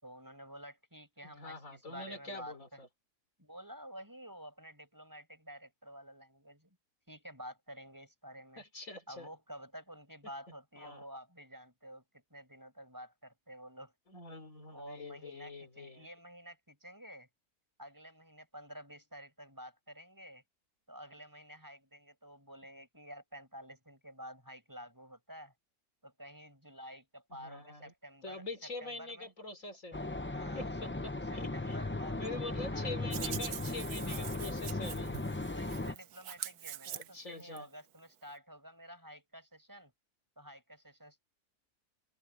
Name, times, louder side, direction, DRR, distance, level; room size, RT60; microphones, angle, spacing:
voice 1, 0.0-2.8 3.4-6.8 7.1-8.6 9.1-13.9 14.7-17.3 17.8-20.4 20.9-25.5 26.0-28.5 28.8-29.3 30.3-30.7 31.3-33.4 34.0-34.4 35.5-39.9 40.4-41.2, equal, 10° right, 6.0 m, -50 dB
voice 2, 1.2-2.9 8.6-9.3 10.8-11.0 14.1-16.1 27.4-27.9 28.2-30.0 30.5-31.8 32.2-35.2 36.9-37.7, left 2 dB, 60° left, 3.8 m, -45 dB
sound 1, 29.9-35.9, left 2 dB, 15° left, 0.5 m, -37 dB
Hands, 33.1-37.6, right 11 dB, 80° right, 1.3 m, -44 dB
omnidirectional pair, 1.6 m